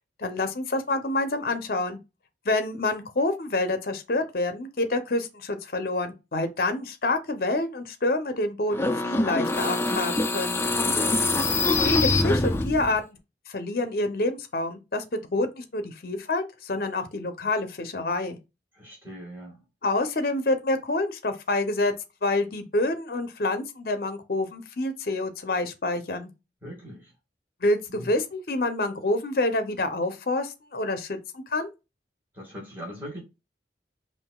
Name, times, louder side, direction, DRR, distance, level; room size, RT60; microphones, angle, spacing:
voice 1, 0.2-2.0 2.5-10.6 11.8-13.2 13.5-15.0 15.3-18.4 19.8-21.9 22.2-26.3 27.6-31.7, left 2 dB, 55° left, 0.6 m, -27 dB
sound 1, 8.7-13.0, left 2 dB, 15° left, 0.4 m, -24 dB
voice 2, 10.9-11.2 18.7-19.6 26.6-27.1 27.9-28.1 32.3-33.2, equal, 10° right, 1.7 m, -40 dB
5.5 x 2.6 x 2.2 m
head